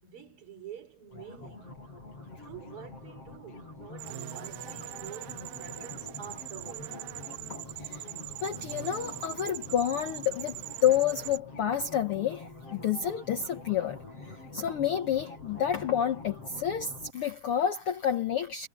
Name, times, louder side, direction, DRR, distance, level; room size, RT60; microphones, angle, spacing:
voice 1, 0.0-1.8 2.4-7.0, right 8 dB, 40° right, 4.7 m, -48 dB
sound 1, 1.1-17.1, left 2 dB, 45° left, 8.1 m, -46 dB
sound 2, 4.0-11.4, right 17 dB, 85° right, 1.6 m, -41 dB
voice 2, 8.4-10.5 10.8-12.4 12.7-18.7, left 9 dB, 80° left, 1.2 m, -29 dB
omnidirectional pair, 3.8 m